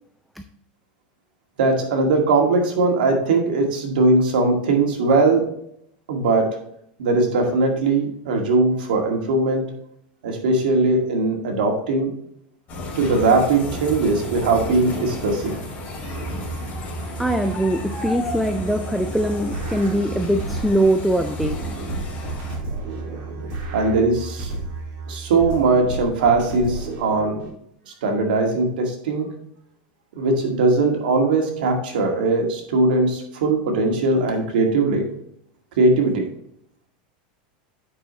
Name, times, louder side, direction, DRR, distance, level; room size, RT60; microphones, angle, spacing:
voice 1, 1.6-5.5 6.1-6.5 7.0-9.6 10.2-12.1 13.0-15.6 23.7-24.5 25.1-27.4 28.0-29.3 30.2-35.1 35.8-36.3, right 3 dB, 85° right, 2 dB, 2.1 m, -20 dB
sound 1, 12.7-22.5, left 1 dB, 35° left, 2.9 m, -33 dB
Musical instrument, 16.0-26.0, right 4 dB, 60° right, 2.6 m, -36 dB
voice 2, 17.2-21.7, right 1 dB, ahead, 6 dB, 0.3 m, -22 dB
sound 2, 19.5-20.9 21.4-24.9 25.4-27.5, right 3 dB, 40° right, 2.4 m, -32 dB
8.9 x 5.6 x 3.1 m, 0.71 s
supercardioid pair, 165°, 5 cm